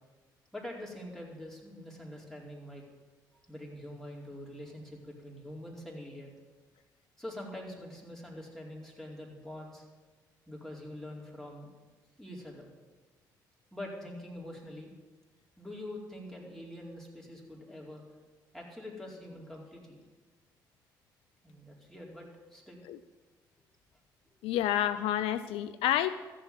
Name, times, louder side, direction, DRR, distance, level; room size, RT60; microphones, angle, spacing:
voice 1, 0.5-2.8 3.5-6.3 7.2-9.8 10.5-11.7 12.2-12.7 13.7-14.9 15.6-18.0 18.5-20.0 21.4-22.8, left 1 dB, 5° left, -2 dB, 4.6 m, -44 dB
voice 2, 24.4-26.1, left 11 dB, 70° left, 13 dB, 0.4 m, -29 dB
14.0 x 7.5 x 9.4 m, 1.3 s
hypercardioid pair, 45°, 10 cm